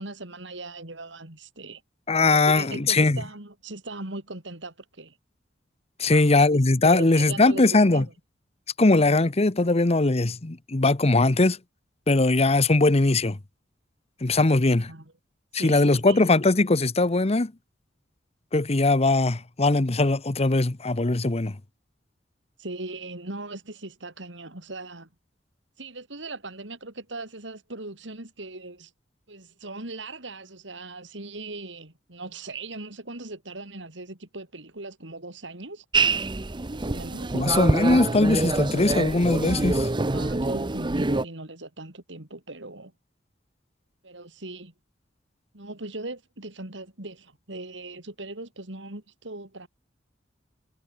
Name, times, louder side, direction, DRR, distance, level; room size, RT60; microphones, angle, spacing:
voice 1, 0.0-1.8 2.3-5.2 6.0-8.0 14.9-15.1 15.6-16.2 22.6-25.1 25.8-28.9 29.3-35.8 36.7-37.6 40.1-42.9 44.0-44.7 45.5-49.7, right 2 dB, 75° right, 3.9 m, -39 dB
voice 2, 2.1-3.2 6.0-8.0 8.8-11.6 12.1-13.4 14.2-14.9 15.5-17.5 18.5-21.6 37.3-39.9, left 2 dB, 35° left, 0.9 m, -20 dB
sound 1, 35.9-41.3, right 3 dB, 25° right, 0.8 m, -25 dB
head